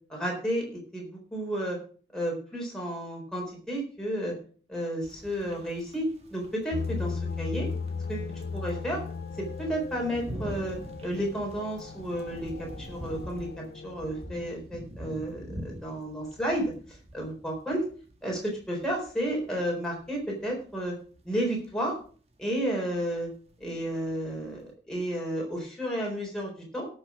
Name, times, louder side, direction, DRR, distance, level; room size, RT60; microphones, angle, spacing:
voice 1, 0.1-1.8 2.1-4.4 4.7-7.7 8.1-9.0 9.6-16.7 17.1-17.8 18.2-20.9 21.2-22.0 22.4-23.3 23.6-26.9, equal, 5° left, -2 dB, 4.0 m, -32 dB
sound 1, 5.0-24.7, right 1 dB, 35° right, 1.5 m, -45 dB
sound 2, 6.7-14.6, left 4 dB, 50° left, 0.4 m, -37 dB
17.0 x 6.5 x 5.0 m, 0.42 s
head